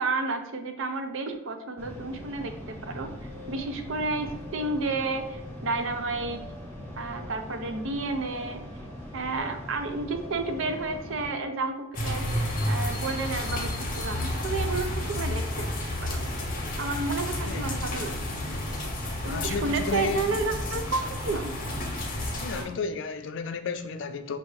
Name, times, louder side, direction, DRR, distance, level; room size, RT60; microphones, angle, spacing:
voice 1, 0.0-3.1 3.5-6.4 7.0-8.6 9.1-15.7 16.0-16.2 16.8-18.3 19.2-21.5, right 3 dB, 70° right, 0.5 m, -31 dB
sound 1, 1.8-11.3, left 1 dB, 10° left, 0.8 m, -41 dB
sound 2, 3.2-20.6, left 4 dB, 15° right, 0.7 m, -51 dB
sound 3, 11.9-22.6, left 1 dB, 40° left, 0.8 m, -31 dB
voice 2, 17.4-17.8 19.2-20.3 22.4-24.4, left 5 dB, 60° left, 0.3 m, -32 dB
5.6 x 2.5 x 3.1 m
head